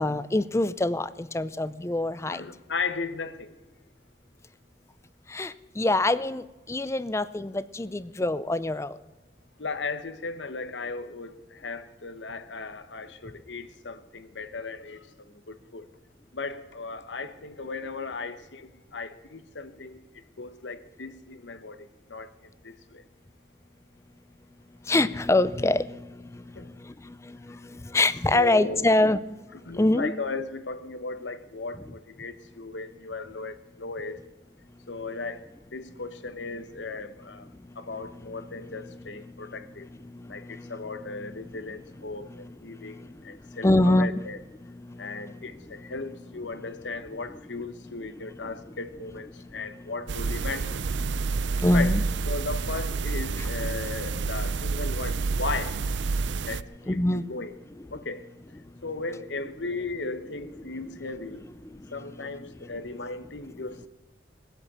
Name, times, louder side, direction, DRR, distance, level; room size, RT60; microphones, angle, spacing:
voice 1, 0.0-2.4 5.3-9.0 24.9-26.0 27.9-29.2 29.8-30.1 43.6-44.1 51.6-52.0 53.4-53.5 56.9-57.2, left 2 dB, 15° left, 0.4 m, -24 dB
voice 2, 2.3-3.5 9.6-15.1 15.5-15.9 16.3-20.0 20.4-22.3 22.6-23.0 26.5-26.7 28.3-28.9 29.5-34.2 34.9-37.5 37.8-39.9 40.3-44.4 45.0-50.8 51.7-52.0 52.3-55.8 56.5-57.6 57.9-58.3 58.8-61.5 61.9-63.9, left 3 dB, 90° left, 1.1 m, -36 dB
sound 1, 50.1-56.6, right 4 dB, 85° right, 0.5 m, -29 dB
19.5 x 8.2 x 8.6 m
head